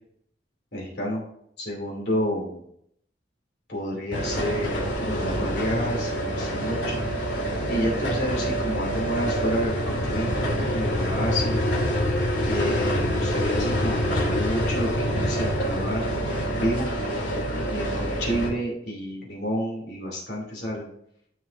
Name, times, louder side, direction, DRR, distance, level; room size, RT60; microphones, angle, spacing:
voice 1, 0.7-1.2 1.6-2.6 3.7-7.1 7.7-11.6 12.4-16.1 16.5-16.9 17.7-20.9, equal, 60° left, -3 dB, 2.8 m, -29 dB
sound 1, 4.1-18.5, equal, 80° left, 2.1 m, -26 dB
13.5 x 5.5 x 2.6 m, 0.71 s
head